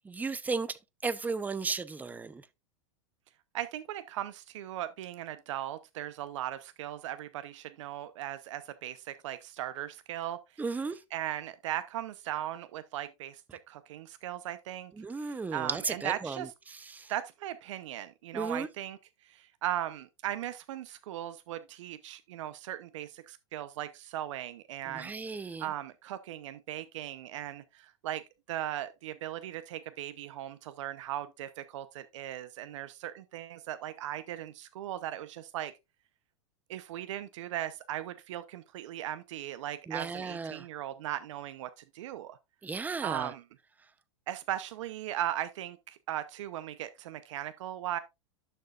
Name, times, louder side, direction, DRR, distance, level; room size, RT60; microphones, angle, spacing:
voice 1, 0.0-2.4 10.6-11.0 15.0-17.1 18.3-18.7 24.9-25.7 39.9-40.7 42.6-43.3, right 4 dB, 10° right, 0.6 m, -35 dB
voice 2, 3.5-10.6 11.1-14.9 15.2-16.5 17.1-19.0 19.2-28.2 28.5-35.7 36.7-42.4 43.0-43.4 44.3-48.0, right 12 dB, 70° right, 0.8 m, -38 dB
11.0 x 6.7 x 2.4 m
hypercardioid pair, 120°, 16 cm